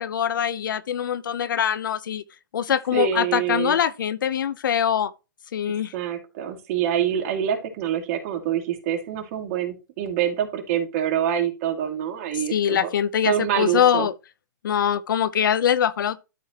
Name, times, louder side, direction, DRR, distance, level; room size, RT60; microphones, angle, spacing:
voice 1, 0.0-2.2 2.5-5.1 5.5-5.9 12.5-14.1 14.6-16.2, left 9 dB, 80° left, 0.8 m, -23 dB
voice 2, 2.9-3.8 5.9-12.9 13.2-14.1, right 9 dB, 45° right, 2.3 m, -26 dB
12.5 x 4.6 x 3.0 m
hypercardioid pair, 145°, 11 cm